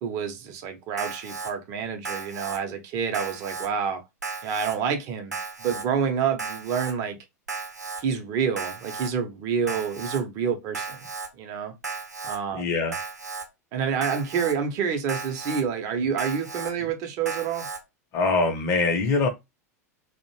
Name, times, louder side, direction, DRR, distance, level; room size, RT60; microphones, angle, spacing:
voice 1, 0.0-4.0 4.4-7.2 8.0-11.0 11.4-11.7 12.2-12.6 13.7-17.7, right 7 dB, 40° right, 0.6 m, -28 dB
Alarm, 1.0-1.5 2.0-2.6 3.1-3.7 4.2-4.8 5.3-5.8 6.4-6.9 7.5-8.0 8.6-9.1 9.7-10.2 10.7-11.3 11.8-12.4 12.9-13.4 14.0-14.5 15.1-15.6 16.2-16.7 17.3-17.8, right 4 dB, 85° right, 0.6 m, -34 dB
voice 2, 12.5-12.9 18.1-19.3, left 3 dB, 35° left, 0.6 m, -23 dB
2.4 x 2.0 x 3.0 m
figure-of-eight pair, 90°, 9 cm